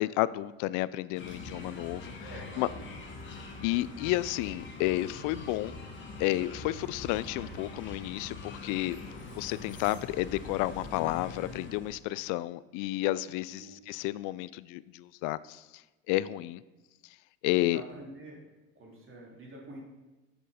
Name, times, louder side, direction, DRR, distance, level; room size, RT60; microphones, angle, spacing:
voice 1, 0.0-2.0 2.6-2.7 3.6-5.8 6.2-15.8 16.1-16.6 17.4-17.8, left 17 dB, 65° left, 18 dB, 0.5 m, -31 dB
sound 1, 1.2-12.0, left 3 dB, 35° left, 1.9 m, -43 dB
voice 2, 2.2-2.9 13.6-14.2 17.5-18.4 18.8-19.8, right 2 dB, 40° right, -2 dB, 2.9 m, -47 dB
8.0 x 6.2 x 5.1 m, 1.1 s
supercardioid pair, 85°, 33 cm